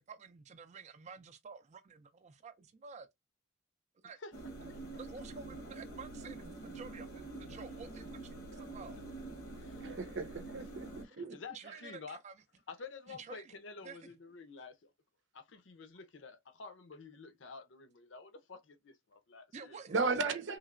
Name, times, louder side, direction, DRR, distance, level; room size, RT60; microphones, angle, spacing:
voice 1, 0.0-3.1 4.0-4.2 5.0-9.0 11.1-12.3 13.1-13.5 13.8-14.1 19.5-20.4, right 5 dB, 35° right, 0.4 m, -51 dB
sound 1, 4.3-11.1, right 2 dB, 90° left, 1.0 m, -46 dB
voice 2, 9.8-11.3 19.9-20.6, right 4 dB, 75° right, 0.7 m, -35 dB
voice 3, 11.0-12.2 12.7-14.9 15.3-19.8, left 4 dB, 75° left, 0.6 m, -50 dB
3.2 x 2.8 x 2.4 m
head